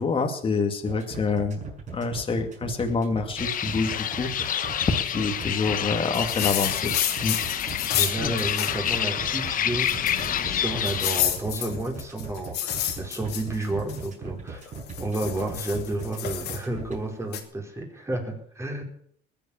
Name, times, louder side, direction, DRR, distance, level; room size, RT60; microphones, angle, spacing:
voice 1, 0.0-1.6 1.9-6.9 7.2-7.4 8.2-8.3, left 4 dB, 30° left, 4 dB, 2.3 m, -27 dB
sound 1, 0.9-17.0, right 4 dB, 45° right, 6.7 m, -38 dB
sound 2, 3.4-11.2, left 10 dB, 55° left, 1.1 m, -28 dB
sound 3, 6.1-9.0 9.3-9.4 9.8-10.4 10.9-14.1 14.7-16.6 17.3-17.4, left 11 dB, 75° left, 2.4 m, -30 dB
voice 2, 7.9-14.6 15.0-18.8, right 2 dB, 15° right, 1 dB, 4.9 m, -31 dB
21.0 x 8.5 x 7.1 m, 0.63 s
cardioid pair, 110°, 17 cm